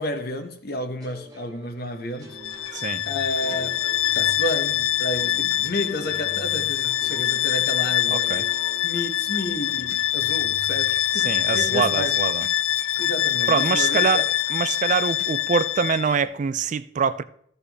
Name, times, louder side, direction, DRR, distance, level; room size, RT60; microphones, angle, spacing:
voice 1, 0.0-2.4 3.0-8.4 8.8-12.2 13.0-14.2, left 1 dB, 50° left, 0.9 m, -31 dB
sound 1, 1.0-4.9 5.8-9.7, equal, 20° right, 1.2 m, -47 dB
Bowed string instrument, 2.3-16.2, left 13 dB, 75° left, 0.3 m, -24 dB
sound 2, 2.4-15.3, left 2 dB, 30° left, 2.6 m, -45 dB
voice 2, 2.7-3.0 8.1-8.4 11.1-12.5 13.5-17.2, right 6 dB, 35° right, 0.3 m, -24 dB
14.0 x 6.7 x 3.4 m
head